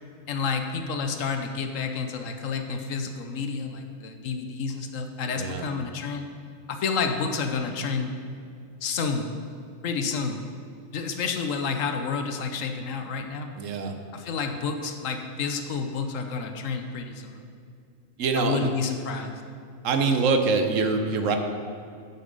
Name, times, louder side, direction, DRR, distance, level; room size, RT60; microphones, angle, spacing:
voice 1, 0.3-6.3 6.7-8.1 8.8-9.4 9.8-10.4 10.9-13.5 14.1-17.4 18.4-19.4, left 5 dB, 75° left, 6 dB, 1.1 m, -30 dB
voice 2, 5.3-5.7 13.6-13.9 18.2-18.7 19.8-21.4, right 4 dB, 70° right, 6 dB, 1.1 m, -24 dB
8.2 x 7.6 x 5.2 m, 2.4 s
omnidirectional pair, 1.4 m